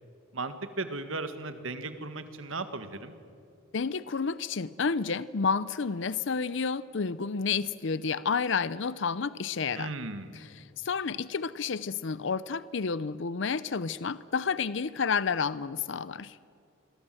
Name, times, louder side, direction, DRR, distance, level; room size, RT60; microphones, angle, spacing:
voice 1, 0.3-3.1 9.8-10.4, right 3 dB, 70° right, 9 dB, 1.9 m, -36 dB
voice 2, 3.7-9.9 10.3-16.4, left 5 dB, 60° left, 17 dB, 0.6 m, -30 dB
28.0 x 22.5 x 7.8 m, 2.3 s
head